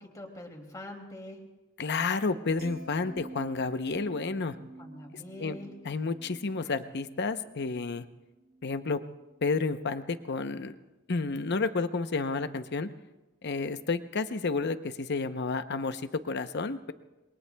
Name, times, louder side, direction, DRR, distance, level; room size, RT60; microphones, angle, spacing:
voice 1, 0.0-1.5 4.8-5.9 6.6-6.7, left 1 dB, 15° left, 1 dB, 2.6 m, -44 dB
voice 2, 1.8-4.6 5.4-5.6 5.8-8.1 8.6-9.0 9.4-10.8 11.1-12.9 13.4-16.9, left 4 dB, 55° left, 10 dB, 0.8 m, -31 dB
sound 1, 2.6-8.9 9.2-9.5, right 2 dB, 50° right, 3.7 m, -49 dB
27.0 x 22.0 x 2.3 m, 1.1 s
head